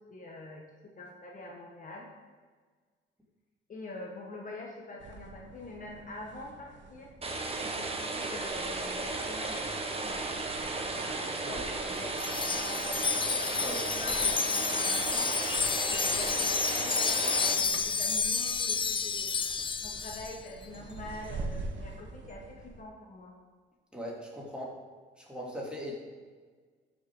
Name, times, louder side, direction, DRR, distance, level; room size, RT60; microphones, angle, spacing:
voice 1, 0.1-2.1 3.7-7.1 7.6-10.3 10.5-13.0 13.5-15.3 15.8-19.3 19.8-23.3, left 2 dB, 40° left, -1 dB, 1.6 m, -45 dB
sound 1, 5.0-22.8, right 3 dB, 70° right, 1.2 m, -47 dB
sound 2, 7.2-17.5, right 3 dB, 30° right, 1.3 m, -35 dB
Wind chime, 12.2-20.4, left 5 dB, 25° left, 0.5 m, -30 dB
voice 2, 23.9-24.7 25.2-25.9, equal, 5° right, -4 dB, 3.1 m, -39 dB
13.0 x 6.5 x 3.9 m, 1.5 s
cardioid pair, 90°, 20 cm